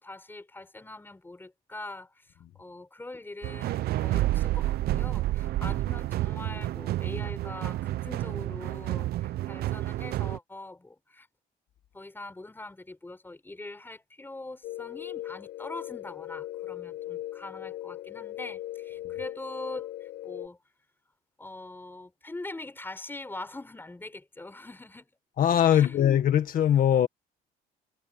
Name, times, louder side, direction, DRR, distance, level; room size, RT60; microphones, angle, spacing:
voice 1, 0.0-2.3 2.5-11.3 11.9-20.6 21.4-25.1 25.7-26.0, left 2 dB, 10° left, 5.9 m, -43 dB
sound 1, 3.4-10.4, right 15 dB, 65° right, 0.7 m, -29 dB
sound 2, 14.6-20.5, left 14 dB, 75° left, 6.4 m, -39 dB
voice 2, 25.4-27.1, left 10 dB, 55° left, 1.8 m, -21 dB
cardioid pair, 110°, 17 cm